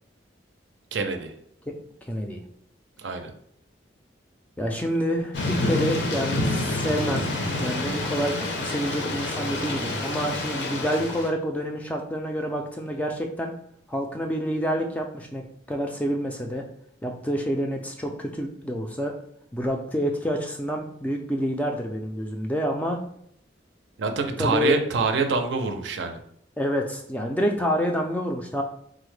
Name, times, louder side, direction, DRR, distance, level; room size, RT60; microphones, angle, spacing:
voice 1, 0.9-1.3 3.0-3.3 24.0-26.2, right 4 dB, 75° right, 6 dB, 0.4 m, -26 dB
voice 2, 2.1-2.4 4.6-7.3 7.6-13.5 13.9-16.6 17.0-19.1 19.5-23.0 24.4-24.8 26.6-28.6, equal, 10° left, 2 dB, 0.3 m, -28 dB
Thunder / Rain, 5.3-11.3, left 2 dB, 70° left, 0.6 m, -28 dB
3.7 x 2.1 x 3.2 m, 0.69 s
head